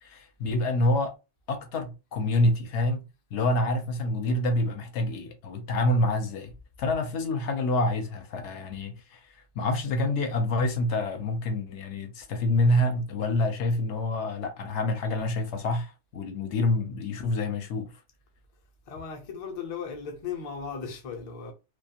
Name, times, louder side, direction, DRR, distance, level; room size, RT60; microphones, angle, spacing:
voice 1, 0.0-1.1 1.5-3.0 3.3-6.5 6.8-17.9, left 1 dB, 75° left, 0.9 m, -27 dB
voice 2, 18.9-21.5, left 6 dB, 40° left, 0.5 m, -36 dB
2.4 x 2.3 x 2.8 m
omnidirectional pair, 1.2 m